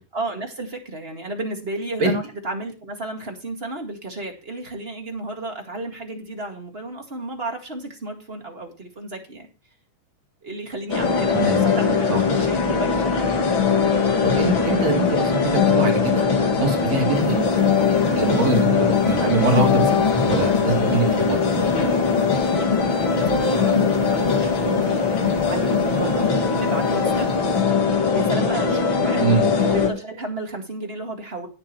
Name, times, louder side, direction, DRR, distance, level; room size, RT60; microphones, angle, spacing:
voice 1, 0.1-9.5 10.4-13.4 22.3-22.7 23.0-31.5, right 2 dB, 25° right, 2 dB, 1.8 m, -33 dB
sound 1, 10.9-29.9, left 5 dB, 45° left, 2.4 m, -21 dB
voice 2, 14.3-16.2 16.6-17.5 18.2-21.7 29.2-29.5, right 3 dB, 65° right, 1 dB, 3.6 m, -23 dB
sound 2, 17.1-27.6, left 5 dB, 20° left, 1.2 m, -30 dB
17.5 x 7.6 x 3.1 m, 0.32 s
omnidirectional pair, 3.3 m